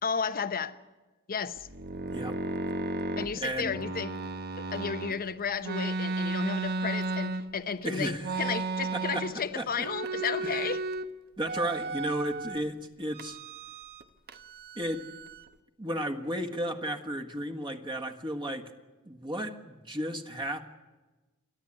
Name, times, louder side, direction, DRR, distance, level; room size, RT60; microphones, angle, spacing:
voice 1, 0.0-0.8 1.3-1.7 3.2-4.1 4.6-10.8, left 6 dB, 40° left, 12 dB, 0.9 m, -33 dB
sound 1, 1.6-5.1 5.6-7.7 8.2-9.5 9.7-11.1 11.4-12.6 13.1-14.0 14.3-15.5, right 3 dB, 45° right, 1.1 m, -34 dB
voice 2, 2.1-2.4 3.4-3.7 7.8-8.3 8.9-9.9 10.4-10.7 11.4-13.4 14.7-15.1 15.8-18.7 19.0-20.6, right 1 dB, 20° right, 4 dB, 1.6 m, -34 dB
28.5 x 11.5 x 10.0 m, 1.2 s
head